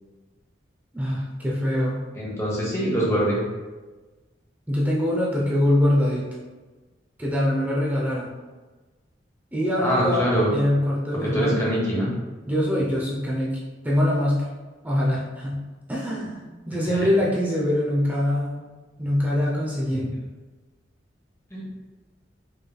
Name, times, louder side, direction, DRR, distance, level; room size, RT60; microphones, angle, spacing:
voice 1, 0.9-2.0 4.7-6.2 7.2-8.3 9.5-10.3 10.5-11.7 12.5-13.6 13.8-14.5 14.8-15.6 15.9-18.6 19.0-20.1, left 1 dB, 10° right, -5 dB, 0.5 m, -23 dB
voice 2, 2.2-3.4 9.8-10.5 11.2-12.1 16.9-17.0 19.9-20.0 21.5-21.6, equal, 15° left, -5 dB, 1.0 m, -24 dB
4.9 x 3.1 x 2.2 m, 1.3 s
head